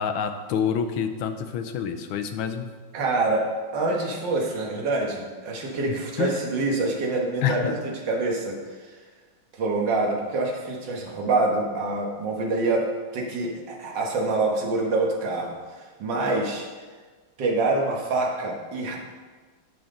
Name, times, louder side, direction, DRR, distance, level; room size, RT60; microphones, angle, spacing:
voice 1, 0.0-2.7 6.2-6.4 7.4-7.7, left 7 dB, 80° left, 7 dB, 1.5 m, -27 dB
voice 2, 2.9-3.5 3.7-8.9 9.5-12.9 13.1-16.7 17.4-19.0, right 3 dB, 60° right, -1 dB, 1.9 m, -26 dB
10.5 x 5.9 x 3.8 m, 1.4 s
omnidirectional pair, 2.3 m